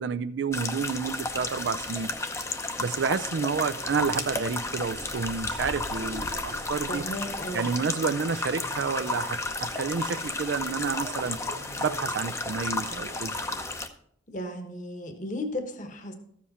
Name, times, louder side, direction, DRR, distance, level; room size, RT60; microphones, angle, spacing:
voice 1, 0.0-2.1 2.8-7.0 7.5-11.4 11.8-13.3, right 5 dB, 70° right, 0.4 m, -30 dB
sound 1, 0.5-13.9, left 2 dB, 15° left, 0.7 m, -33 dB
sound 2, 2.9-13.6, right 1 dB, 40° right, 1.3 m, -47 dB
voice 2, 6.9-7.7 14.3-16.1, left 1 dB, 40° left, 1.2 m, -35 dB
13.5 x 7.6 x 4.2 m
head